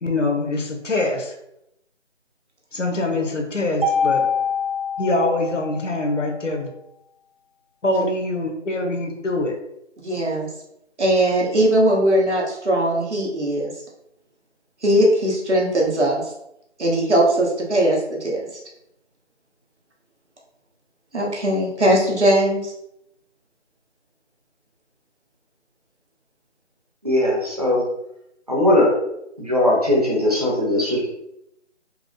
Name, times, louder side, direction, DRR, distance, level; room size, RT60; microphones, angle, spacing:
voice 1, 0.0-1.3 2.7-4.2 5.0-6.7 7.8-9.6, left 2 dB, 80° left, 2 dB, 1.2 m, -24 dB
Mallet percussion, 3.8-6.1, left 5 dB, 50° right, 0.6 m, -24 dB
voice 2, 10.0-10.5 11.0-13.7 14.8-16.3 16.8-18.4 21.1-22.7, right 1 dB, 65° right, -2 dB, 1.4 m, -19 dB
voice 3, 27.0-27.9 28.5-28.9 29.4-31.1, left 1 dB, 30° right, -4 dB, 1.0 m, -19 dB
4.7 x 2.1 x 3.7 m, 0.80 s
figure-of-eight pair, 180°, 36 cm